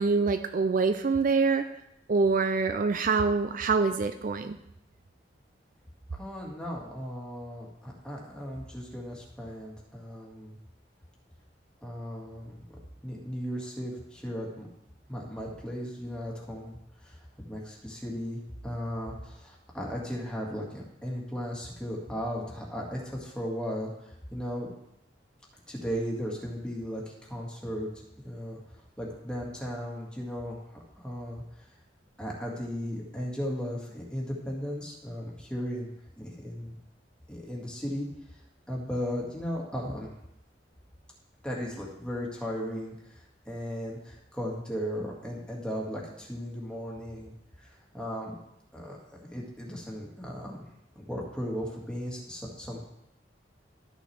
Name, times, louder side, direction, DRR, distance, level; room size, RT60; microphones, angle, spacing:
voice 1, 0.0-1.6 2.1-4.6, right 4 dB, 50° right, 8 dB, 0.4 m, -25 dB
voice 2, 6.1-10.6 11.8-12.6 13.0-14.7 15.1-16.8 17.0-24.7 25.7-27.9 28.2-28.6 29.0-30.6 31.0-31.4 32.2-36.8 37.3-38.1 38.7-40.1 41.4-47.3 47.9-48.4 48.7-49.0 49.3-50.6 51.0-52.8, equal, 5° left, -3 dB, 2.0 m, -36 dB
13.0 x 6.2 x 3.4 m, 0.80 s
head